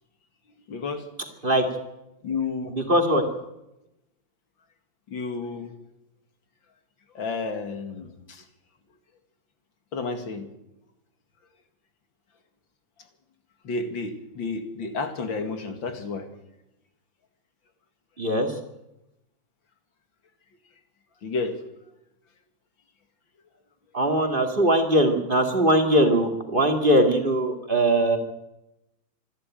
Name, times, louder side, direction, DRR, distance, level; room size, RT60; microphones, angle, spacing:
voice 1, 0.7-1.0 2.2-2.7 5.1-5.7 7.1-8.4 9.9-10.5 13.6-16.3 21.2-21.6, left 4 dB, 80° left, 7 dB, 2.9 m, -31 dB
voice 2, 2.7-3.2 18.2-18.5 23.9-28.2, right 1 dB, 25° right, 4 dB, 2.5 m, -21 dB
26.5 x 11.5 x 9.0 m, 0.90 s
omnidirectional pair, 2.1 m